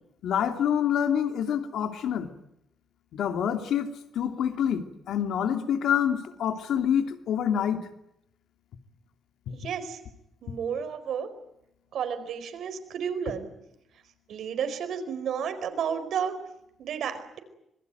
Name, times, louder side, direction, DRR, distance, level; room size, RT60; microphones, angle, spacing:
voice 1, 0.2-2.3 3.1-3.9 4.1-7.8, left 9 dB, 75° left, 7 dB, 2.6 m, -26 dB
voice 2, 9.5-10.0 10.4-11.3 11.9-13.5 14.3-16.4 16.8-17.4, right 7 dB, 60° right, 9 dB, 4.7 m, -32 dB
26.0 x 22.0 x 9.3 m, 0.83 s
cardioid pair, 175°, 0 cm